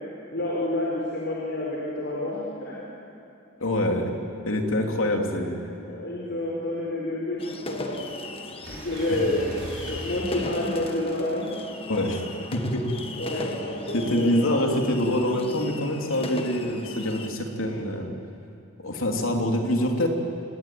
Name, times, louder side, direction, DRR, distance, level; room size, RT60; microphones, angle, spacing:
voice 1, 0.3-2.8 5.4-8.2 8.7-11.5 13.2-14.3 14.6-14.8, left 1 dB, 55° left, -4 dB, 4.2 m, -29 dB
voice 2, 3.6-4.1 4.4-5.6 11.9-12.2 12.5-12.9 13.3-13.5 13.9-18.1 18.8-20.1, left 1 dB, 80° left, 2 dB, 3.1 m, -25 dB
sound 1, 7.4-17.3, left 2 dB, 30° left, 1.5 m, -37 dB
sound 2, 8.6-11.1 12.5-13.8, equal, 60° right, 5.4 m, -41 dB
27.0 x 20.5 x 9.3 m, 2.6 s
head